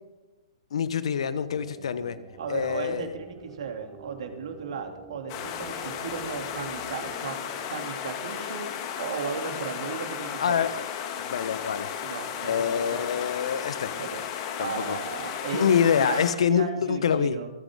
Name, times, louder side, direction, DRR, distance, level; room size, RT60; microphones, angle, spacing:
voice 1, 0.7-2.2 2.5-3.1 10.4-10.8 11.2-12.0 12.4-13.9 14.6-15.0 15.5-17.4, left 7 dB, 65° left, 14 dB, 1.2 m, -26 dB
sound 1, 1.1-8.7, right 3 dB, 20° right, 2.7 m, -48 dB
voice 2, 2.4-7.4 7.7-8.6 9.0-10.6 12.0-13.1 14.0-14.2 14.6-17.5, right 6 dB, 65° right, 5 dB, 2.9 m, -35 dB
sound 2, 5.3-16.3, left 8 dB, 40° left, 2.4 m, -34 dB
27.0 x 9.2 x 3.8 m, 1.1 s
hypercardioid pair, 125°, 3 cm